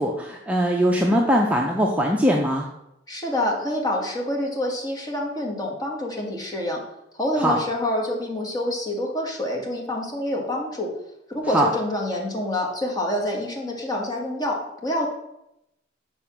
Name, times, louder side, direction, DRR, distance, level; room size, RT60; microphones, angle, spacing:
voice 1, 0.0-2.7 7.4-7.6 11.5-11.7, equal, 10° right, -1 dB, 0.6 m, -21 dB
voice 2, 3.1-6.8 7.1-10.9 11.3-15.1, left 1 dB, 20° left, 0 dB, 1.6 m, -27 dB
6.8 x 4.5 x 5.9 m, 0.84 s
head